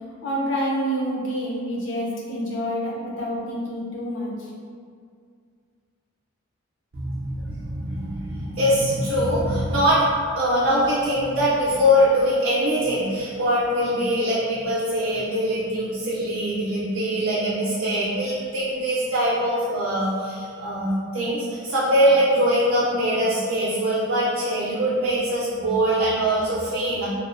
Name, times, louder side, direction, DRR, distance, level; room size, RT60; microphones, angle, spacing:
voice 1, 0.2-4.5, equal, 60° left, -4 dB, 0.6 m, -27 dB
voice 2, 6.9-10.0 10.4-27.1, equal, 55° right, -8 dB, 0.4 m, -22 dB
2.7 x 2.1 x 2.4 m, 2.2 s
head